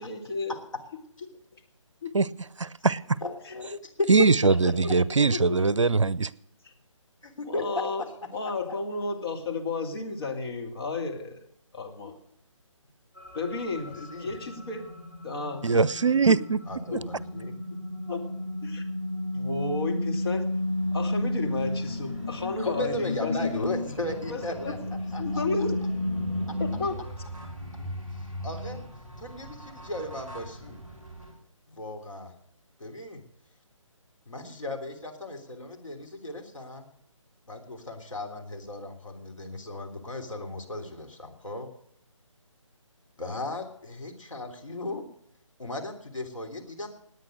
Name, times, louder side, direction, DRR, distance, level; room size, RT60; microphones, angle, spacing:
voice 1, 0.0-0.6 2.0-2.1 3.5-3.6 5.3-5.6 6.6-6.7 7.5-11.4 11.7-12.2 13.3-14.9 15.2-15.9 16.3-16.4 16.9-17.0 18.1-18.3 18.6-18.8 19.3-20.5 20.9-23.5 24.3-24.8 25.2-25.8 26.6-27.0, left 3 dB, 45° left, 1 dB, 2.7 m, -32 dB
voice 2, 2.6-3.2 4.1-6.3 15.6-16.6, right 4 dB, 65° right, 21 dB, 0.6 m, -22 dB
voice 3, 3.2-4.3 4.6-4.7 7.2-8.1 13.8-14.4 16.7-17.5 22.6-25.4 26.5-26.6 28.4-28.8 29.2-30.8 31.7-32.3 32.8-33.2 34.3-36.9 37.5-41.7 43.2-45.0 45.6-46.9, left 1 dB, 70° left, 3 dB, 3.3 m, -35 dB
sound 1, 13.2-31.3, left 1 dB, 5° left, 4.3 m, -33 dB
19.0 x 9.2 x 6.5 m, 0.69 s
figure-of-eight pair, 145°, 17 cm